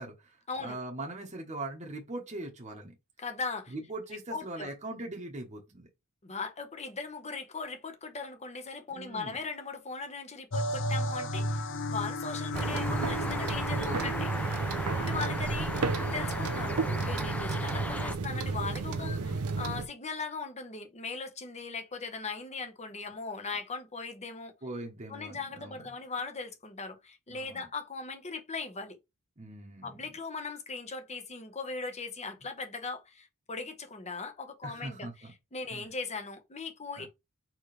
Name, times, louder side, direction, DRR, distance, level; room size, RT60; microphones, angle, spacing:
voice 1, 0.0-3.0 3.7-5.9 8.9-9.4 13.8-15.2 19.0-19.7 24.6-25.8 27.3-27.6 29.4-29.9 34.6-35.3 35.7-35.9 37.0-37.1, right 2 dB, 30° right, 1.1 m, -41 dB
voice 2, 3.2-3.7 4.3-4.7 6.2-11.6 11.9-14.3 14.6-24.5 25.1-29.0 29.8-37.1, left 4 dB, 30° left, 1.1 m, -39 dB
sound 1, 10.5-16.7, left 1 dB, 60° left, 0.7 m, -36 dB
sound 2, 12.5-18.1, left 1 dB, 5° left, 0.4 m, -37 dB
sound 3, 12.5-19.9, right 4 dB, 85° right, 0.6 m, -32 dB
4.4 x 3.1 x 3.3 m
head